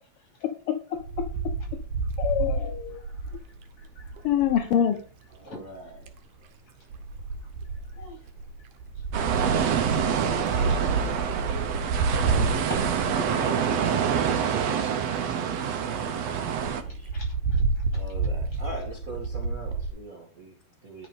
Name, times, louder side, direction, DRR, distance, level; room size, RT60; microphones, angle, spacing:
voice 1, 0.4-1.3 2.2-3.0 4.2-5.0, left 9 dB, 70° left, 6 dB, 1.4 m, -26 dB
Wind, 1.0-4.6 5.7-6.2 6.9-13.9 14.5-14.6 14.8-14.9 15.2-15.3 15.6-15.7 16.0-16.1 16.5-19.9, right 4 dB, 85° right, 2.5 m, -29 dB
voice 2, 2.9-4.3 5.4-5.6 6.7-6.8 7.4-7.5 7.8-8.3 8.9-9.0 9.7-10.1 10.6-11.3 14.5-14.8 17.1-18.0, left 1 dB, 45° left, 1 dB, 6.0 m, -49 dB
voice 3, 5.3-5.9 10.2-12.9 17.9-21.1, right 2 dB, 35° right, -1 dB, 1.8 m, -43 dB
sound 1, 9.1-16.8, right 8 dB, 65° right, 2.2 m, -26 dB
11.0 x 5.9 x 5.2 m, 0.39 s
omnidirectional pair, 3.3 m